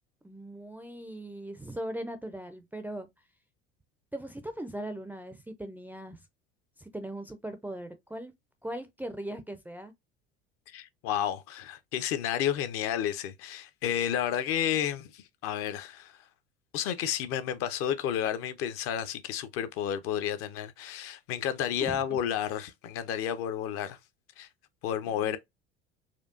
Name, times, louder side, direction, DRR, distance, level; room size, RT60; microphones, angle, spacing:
voice 1, 0.2-3.1 4.1-6.2 6.8-8.3 8.6-9.9 21.8-22.2 25.1-25.4, right 1 dB, 5° right, 0.4 m, -39 dB
voice 2, 10.7-16.2 16.7-24.0 24.4-24.5 24.8-25.4, left 10 dB, 45° left, 0.6 m, -31 dB
4.4 x 2.4 x 2.4 m
figure-of-eight pair, 65°, 32 cm